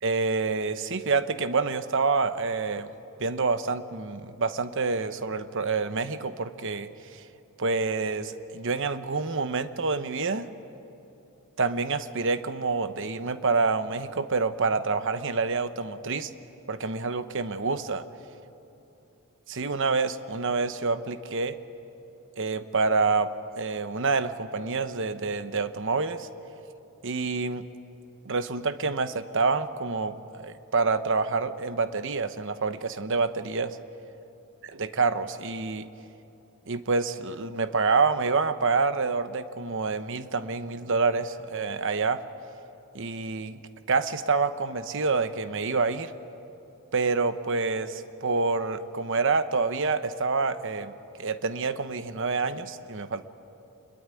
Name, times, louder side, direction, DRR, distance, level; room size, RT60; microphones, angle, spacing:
voice 1, 0.0-2.9 3.2-7.2 7.6-10.5 11.6-16.3 16.7-18.0 19.5-21.6 22.4-26.3 27.0-27.6 28.2-33.8 34.7-35.9 36.7-42.2 42.9-43.6 43.9-46.1 46.9-50.9 51.2-53.2, right 4 dB, 60° right, 11 dB, 1.0 m, -27 dB
27.0 x 22.0 x 9.9 m, 2.9 s
head